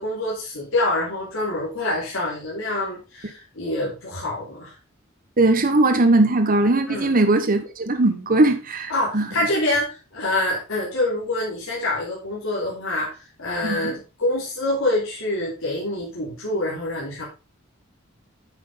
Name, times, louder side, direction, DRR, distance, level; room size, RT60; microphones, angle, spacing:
voice 1, 0.0-4.7 6.9-7.1 8.9-17.2, left 1 dB, 85° left, 3.2 m, -26 dB
voice 2, 5.4-9.3 13.6-13.9, right 2 dB, 45° right, 1.2 m, -19 dB
9.2 x 6.4 x 3.8 m
head